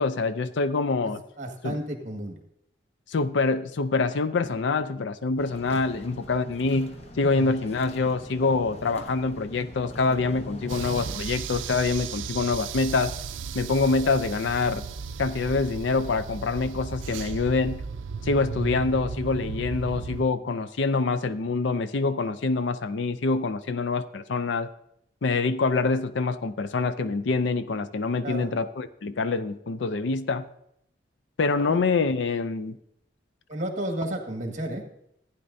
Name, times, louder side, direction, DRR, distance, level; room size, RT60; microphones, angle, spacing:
voice 1, 0.0-1.2 1.6-1.7 3.1-13.1 13.6-14.8 15.2-17.8 18.2-24.7 25.2-30.4 31.4-32.8, left 4 dB, 70° left, 12 dB, 0.5 m, -25 dB
voice 2, 1.0-2.4 7.3-7.5 12.3-12.6 28.2-28.5 31.6-31.8 33.5-34.8, right 1 dB, 40° right, 2 dB, 1.8 m, -33 dB
sound 1, 5.4-11.2, equal, 35° left, 0.9 m, -42 dB
sound 2, 10.7-20.2, right 5 dB, 80° right, 0.5 m, -35 dB
15.0 x 9.9 x 2.7 m, 0.75 s
head